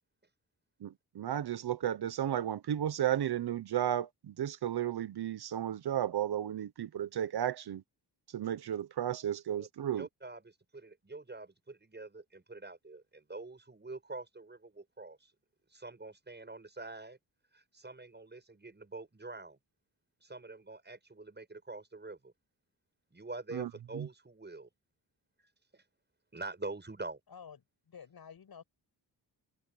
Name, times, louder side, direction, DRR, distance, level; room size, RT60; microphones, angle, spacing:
voice 1, 0.8-7.8 8.3-10.1 23.5-24.1, right 10 dB, 75° right, 1.0 m, -34 dB
voice 2, 9.9-15.3 15.7-17.2 17.5-19.6 20.2-22.3 23.1-24.7 25.7-25.8 26.3-27.2, right 3 dB, 25° right, 7.9 m, -45 dB
voice 3, 27.3-28.6, left 7 dB, 65° left, 6.8 m, -51 dB
cardioid pair, 85°, 40 cm